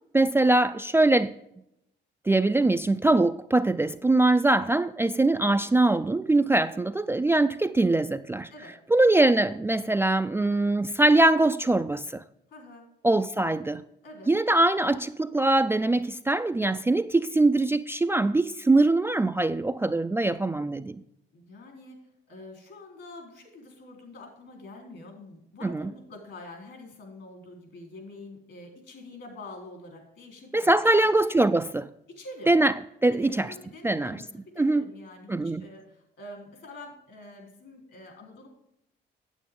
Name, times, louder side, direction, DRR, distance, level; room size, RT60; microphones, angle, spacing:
voice 1, 0.1-1.3 2.3-8.5 8.9-12.2 13.0-13.8 14.3-21.0 25.6-25.9 30.5-31.9 32.5-32.7 33.0-33.5 33.8-34.2 34.6-34.8 35.3-35.6, right 2 dB, 10° right, 0.3 m, -22 dB
voice 2, 12.5-12.9 14.0-14.3 21.3-22.0 22.3-31.1 32.2-32.6 33.1-34.2 34.5-38.5, left 2 dB, 65° left, 3.7 m, -46 dB
9.0 x 8.3 x 3.7 m
cardioid pair, 90°, 20 cm